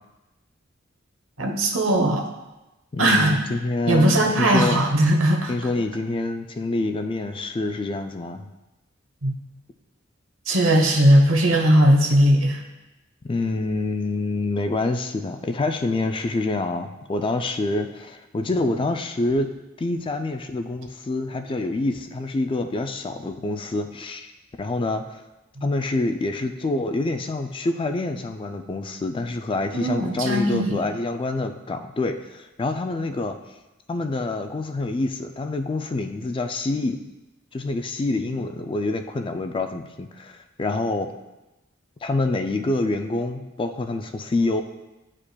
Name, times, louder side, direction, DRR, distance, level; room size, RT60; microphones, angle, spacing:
voice 1, 1.4-2.3 3.0-3.4 3.9-5.5 9.2-9.4 10.5-12.6 29.7-30.7, right 1 dB, 85° right, 2 dB, 1.0 m, -18 dB
voice 2, 2.9-4.8 5.5-8.5 13.2-24.3 24.6-25.2 25.6-33.4 33.9-37.0 37.5-41.1 42.0-44.6, left 2 dB, 25° left, 7 dB, 0.3 m, -26 dB
10.0 x 4.9 x 2.2 m, 1.0 s
head